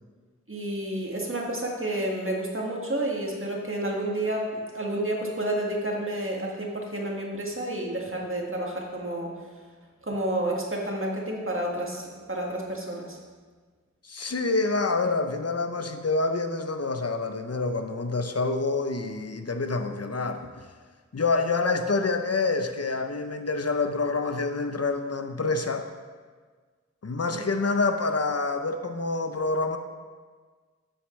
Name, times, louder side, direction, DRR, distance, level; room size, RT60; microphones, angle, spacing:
voice 1, 0.5-9.3 10.0-13.2 27.3-27.4, right 1 dB, 45° right, -2 dB, 1.8 m, -30 dB
voice 2, 14.0-20.7 21.1-25.9 27.0-29.8, left 3 dB, 55° left, 7 dB, 0.7 m, -27 dB
12.0 x 6.9 x 3.2 m, 1.5 s
wide cardioid pair, 45°, 30 cm